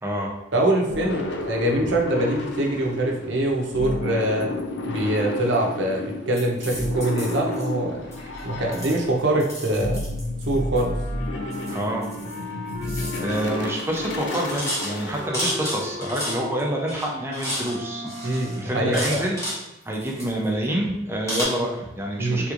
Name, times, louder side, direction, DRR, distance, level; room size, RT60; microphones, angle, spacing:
voice 1, 0.0-0.3 11.7-12.1 13.2-18.0 18.6-19.4 19.9-22.5, right 1 dB, 10° right, -1 dB, 0.5 m, -27 dB
voice 2, 0.5-4.5 4.9-8.0 8.4-10.0 10.5-11.0 18.2-19.2 22.2-22.5, right 1 dB, 70° right, 0 dB, 0.6 m, -24 dB
sound 1, 0.9-15.3, left 2 dB, 65° left, 0.5 m, -31 dB
sound 2, 6.3-7.7 8.1-8.4 8.7-10.8 11.5-12.4 12.7-13.5 13.8-14.0 14.3-16.6 16.9-17.8 18.0-19.6 19.9-20.6 21.3-21.4, equal, 15° left, 1.0 m, -32 dB
Wind instrument woodwind instrument, 10.7-18.8, left 1 dB, 40° left, 0.9 m, -38 dB
3.5 x 3.0 x 2.5 m, 1.0 s
head